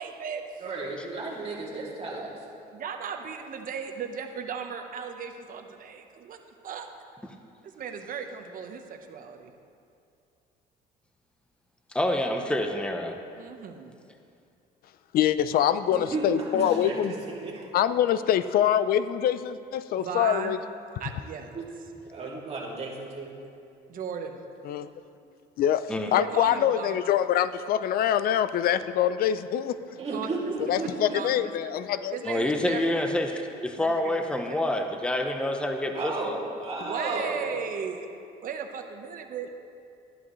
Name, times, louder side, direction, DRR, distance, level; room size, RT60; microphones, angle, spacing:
voice 1, 0.0-0.4 2.7-6.4 6.6-6.9 7.6-9.5 13.4-13.9 20.0-20.6 21.0-21.5 23.9-24.4 26.0-27.1 30.0-30.5 31.1-31.5 32.1-33.1 33.8-34.6 36.8-38.1 38.4-39.5, right 6 dB, 55° right, 5 dB, 1.0 m, -36 dB
voice 2, 0.6-2.3 15.9-17.6 21.5-21.7 22.0-23.4 30.0-31.4 35.9-37.6, right 3 dB, 35° right, -4 dB, 2.5 m, -34 dB
voice 3, 11.9-13.2 25.9-26.1 32.2-36.4, left 1 dB, 5° left, 4 dB, 0.8 m, -27 dB
voice 4, 15.1-17.1 17.7-20.6 24.7-24.9 25.6-25.8 26.1-29.8 30.7-32.2, left 10 dB, 60° left, 13 dB, 0.5 m, -24 dB
13.5 x 11.0 x 3.1 m, 2.5 s
cardioid pair, 110°, 17 cm